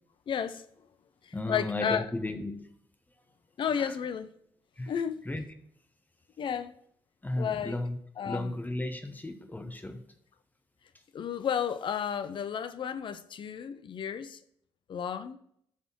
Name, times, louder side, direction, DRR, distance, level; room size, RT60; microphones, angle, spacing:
voice 1, 0.3-0.6 1.2-2.0 3.6-4.3 4.9-5.3 6.4-6.7 7.4-7.7 8.2-8.5 11.1-14.4 14.9-15.4, left 8 dB, 45° left, 0.6 m, -32 dB
voice 2, 1.3-2.7 3.8-4.0 4.8-4.9 5.2-5.4 7.2-8.0 8.2-10.0, left 1 dB, 15° left, 1.0 m, -34 dB
12.0 x 4.1 x 4.5 m
figure-of-eight pair, 40°, 12 cm